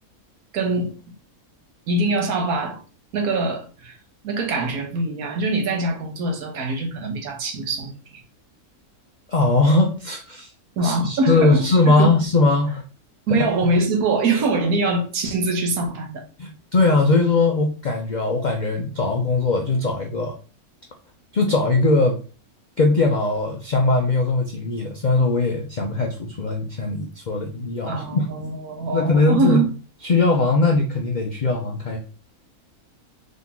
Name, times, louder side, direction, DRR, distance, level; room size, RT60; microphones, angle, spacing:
voice 1, 0.5-0.9 1.9-2.8 3.1-3.9 4.2-8.2 10.8-12.1 13.3-16.2 27.9-29.7, right 3 dB, 80° right, 1.4 m, -23 dB
voice 2, 9.3-10.5 10.8-12.8 16.4-20.3 21.3-22.2 22.8-28.2 28.9-29.6 30.0-32.0, left 3 dB, 60° left, 0.4 m, -20 dB
3.9 x 2.8 x 3.6 m
omnidirectional pair, 1.6 m